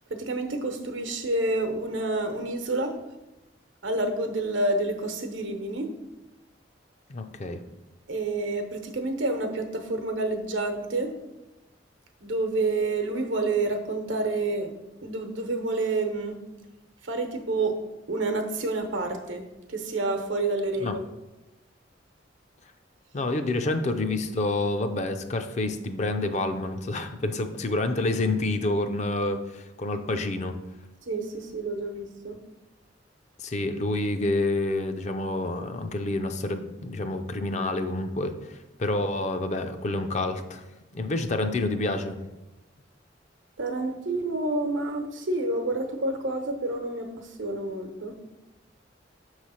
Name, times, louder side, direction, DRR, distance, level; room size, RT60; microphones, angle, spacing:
voice 1, 0.1-3.0 3.8-5.9 8.1-11.1 12.2-14.7 15.0-16.4 17.0-17.7 18.1-21.0 31.1-32.4 43.6-48.2, right 2 dB, 90° right, 5 dB, 0.9 m, -28 dB
voice 2, 7.1-7.6 20.8-20.9 23.1-30.6 33.4-40.6 40.9-42.2, left 2 dB, 40° left, 8 dB, 0.4 m, -28 dB
6.7 x 3.2 x 5.6 m, 1.0 s
head